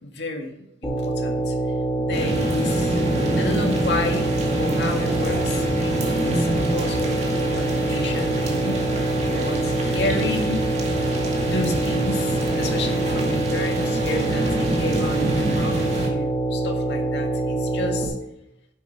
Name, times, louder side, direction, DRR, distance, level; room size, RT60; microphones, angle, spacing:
voice 1, 0.0-1.6 2.0-3.0 3.3-9.0 9.3-10.6 11.4-18.2, left 2 dB, 65° left, 3 dB, 2.0 m, -31 dB
sound 1, 0.8-18.0, right 2 dB, 10° left, 2.3 m, -25 dB
sound 2, 2.1-16.1, right 1 dB, 35° right, 2.2 m, -27 dB
10.5 x 8.1 x 4.7 m, 0.86 s
head